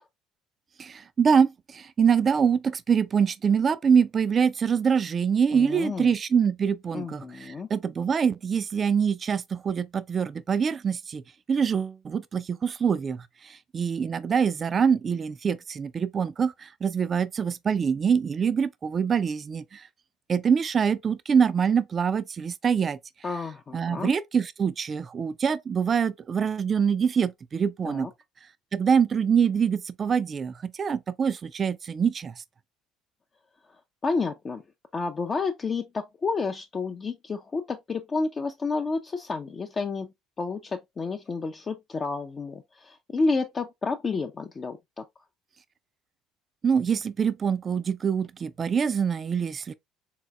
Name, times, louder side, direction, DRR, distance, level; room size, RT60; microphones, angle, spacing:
voice 1, 0.8-11.2 11.5-19.9 20.3-23.0 23.7-28.1 28.7-32.3 46.6-49.7, right 6 dB, 40° right, 0.3 m, -25 dB
voice 2, 5.5-6.1 6.9-7.7 23.2-24.1 27.8-28.1 34.0-34.6 34.9-45.0, left 4 dB, 35° left, 0.4 m, -30 dB
3.8 x 2.9 x 2.2 m
hypercardioid pair, 60°, 0 cm